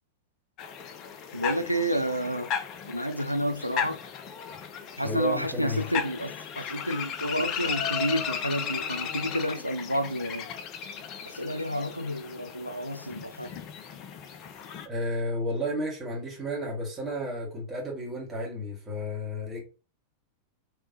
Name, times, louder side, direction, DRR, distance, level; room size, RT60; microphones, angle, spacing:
sound 1, 0.6-14.9, left 7 dB, 35° left, 0.5 m, -36 dB
voice 1, 1.3-2.5 2.8-4.0 5.0-10.5 11.2-13.6, equal, 90° left, 0.3 m, -30 dB
voice 2, 5.0-5.8 14.8-19.6, left 1 dB, 20° right, 1.7 m, -32 dB
3.3 x 3.1 x 2.7 m
figure-of-eight pair, 90°, 0 cm